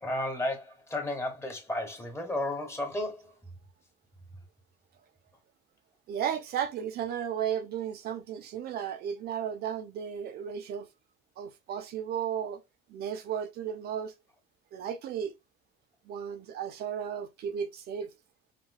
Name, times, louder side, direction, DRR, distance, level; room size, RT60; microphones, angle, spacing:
voice 1, 0.0-3.3, left 1 dB, 15° left, 1.1 m, -33 dB
voice 2, 6.1-10.9 11.4-12.6 12.9-14.1 14.7-15.3 16.1-18.1, right 8 dB, 60° right, 0.6 m, -34 dB
4.9 x 2.2 x 2.2 m
cardioid pair, 115°, 19 cm